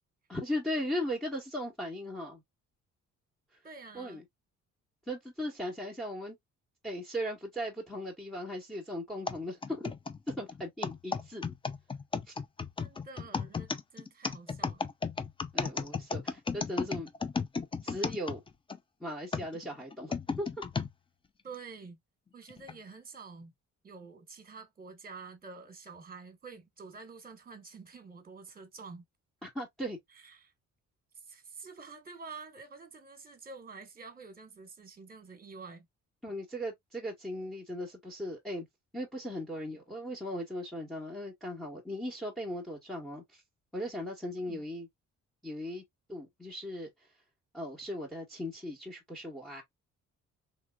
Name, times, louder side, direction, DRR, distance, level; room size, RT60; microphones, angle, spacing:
voice 1, 0.3-2.4 3.9-4.2 5.1-6.4 6.8-9.9 10.3-11.4 12.3-12.4 15.5-17.1 17.8-18.4 19.0-20.5 29.4-30.0 36.2-38.7 38.9-43.4 43.7-44.9 45.4-45.8 46.1-46.9 47.5-49.6, equal, ahead, 1.0 m, -38 dB
voice 2, 3.6-4.2 12.8-14.8 21.4-22.0 22.3-23.5 23.8-29.0 30.1-30.5 31.1-35.9 44.4-44.6, right 4 dB, 30° right, 1.2 m, -48 dB
sound 1, 9.3-18.8 19.3-20.9 21.5-21.6 22.5-22.7, left 4 dB, 20° left, 0.4 m, -34 dB
3.1 x 3.1 x 2.3 m
cardioid pair, 90°, 30 cm